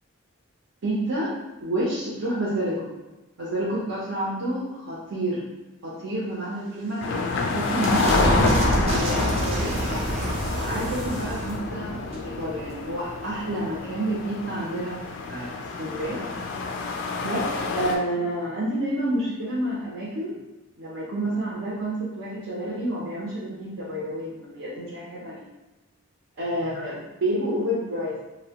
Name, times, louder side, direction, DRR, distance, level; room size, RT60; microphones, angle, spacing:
voice 1, 0.8-1.3 1.6-3.0 3.4-5.5 5.8-9.8 10.6-15.0 15.3-15.5 15.8-16.2 17.2-20.4 20.8-25.4 26.4-28.2, right 1 dB, 70° right, -7 dB, 0.7 m, -29 dB
sound 1, 6.7-13.1, right 1 dB, 30° right, 0.5 m, -28 dB
sound 2, 7.0-18.0, left 3 dB, 60° left, 0.3 m, -28 dB
2.7 x 2.1 x 2.8 m, 1.1 s
head